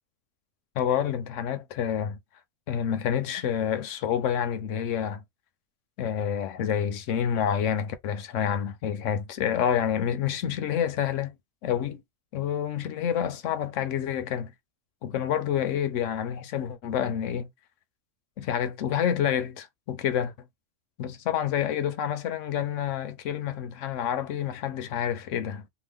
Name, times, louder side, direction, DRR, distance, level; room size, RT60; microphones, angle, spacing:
voice 1, 0.8-2.2 2.7-5.2 6.0-11.4 11.6-12.0 12.3-14.5 15.0-17.5 18.4-20.3 21.0-25.6, left 9 dB, 80° left, 1.0 m, -28 dB
2.9 x 2.2 x 3.4 m
omnidirectional pair, 1.3 m